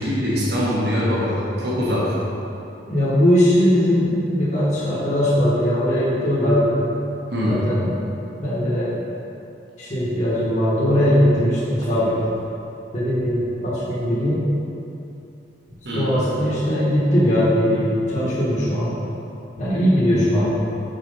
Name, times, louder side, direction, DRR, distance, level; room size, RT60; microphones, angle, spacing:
voice 1, 0.0-2.1 7.3-7.6 15.8-16.1, equal, 65° right, -7 dB, 1.2 m, -22 dB
voice 2, 2.9-6.9 7.4-7.9 8.4-8.9 9.8-12.1 12.9-14.5 15.9-18.9 19.6-20.5, equal, 40° left, -9 dB, 1.4 m, -20 dB
6.0 x 4.2 x 5.4 m, 2.8 s
head